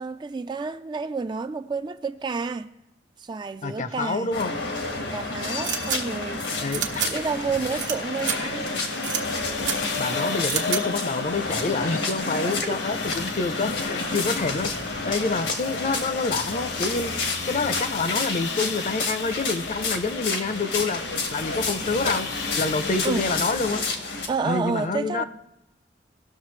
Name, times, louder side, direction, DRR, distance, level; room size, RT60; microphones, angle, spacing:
voice 1, 0.0-2.7 3.2-4.3 4.9-8.7 12.4-12.8 23.0-23.3 24.3-25.2, right 4 dB, 25° right, 0.3 m, -30 dB
voice 2, 3.6-4.6 6.6-7.2 10.0-17.1 17.5-21.0 21.3-22.3 22.6-23.8 24.4-25.2, left 3 dB, 40° left, 0.6 m, -27 dB
sound 1, 4.3-24.3, left 3 dB, 85° left, 1.5 m, -30 dB
sound 2, 5.6-6.0 6.7-7.1 7.8-8.4 9.0-9.2 9.6-9.8 10.5-10.8, right 8 dB, 85° right, 1.1 m, -27 dB
sound 3, 7.1-23.5, left 4 dB, 70° left, 0.9 m, -36 dB
18.0 x 6.5 x 3.2 m
head